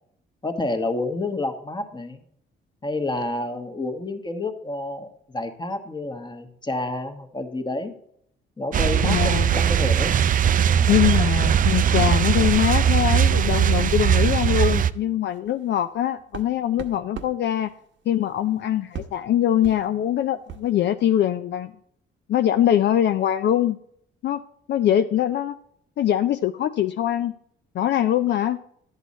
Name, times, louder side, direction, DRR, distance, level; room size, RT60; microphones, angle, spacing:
voice 1, 0.4-2.2 2.8-7.9 8.6-10.2 10.6-10.9, left 2 dB, 20° left, 6 dB, 1.3 m, -29 dB
sound 1, 8.7-14.9, right 9 dB, 45° right, 0.4 m, -20 dB
voice 2, 9.0-9.5 10.9-17.7 18.1-21.7 22.3-23.8 24.2-24.4 24.7-25.6 26.0-27.3 27.7-28.6, left 11 dB, 60° left, 9 dB, 0.4 m, -22 dB
sound 2, 12.1-12.3 12.7-12.9 13.8-13.9 14.3-14.4 14.9-20.8, right 7 dB, 70° right, 1.0 m, -43 dB
11.5 x 8.1 x 4.2 m, 0.68 s
cardioid pair, 90°, 20 cm